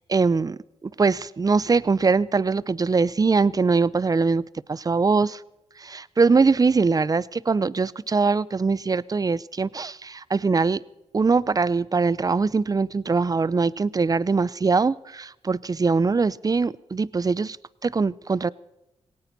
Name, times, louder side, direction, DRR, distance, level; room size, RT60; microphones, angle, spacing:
voice 1, 0.1-4.4 4.7-5.4 5.8-10.8 11.1-17.6 17.8-18.5, right 4 dB, 30° right, 22 dB, 0.5 m, -22 dB
18.0 x 17.5 x 4.1 m, 0.94 s
cardioid pair, 55°, 12 cm